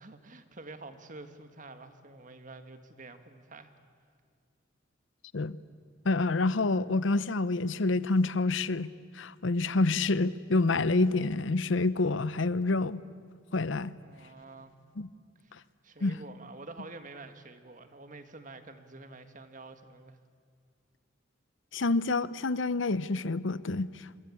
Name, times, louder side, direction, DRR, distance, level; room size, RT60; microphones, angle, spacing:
voice 1, 0.0-3.7 14.0-14.7 15.4-20.2, right 3 dB, 40° right, 1.6 m, -48 dB
voice 2, 6.0-13.0 13.5-13.9 15.0-15.1 16.0-16.2 21.7-23.9, left 3 dB, 75° left, 0.7 m, -27 dB
26.5 x 24.0 x 8.5 m
head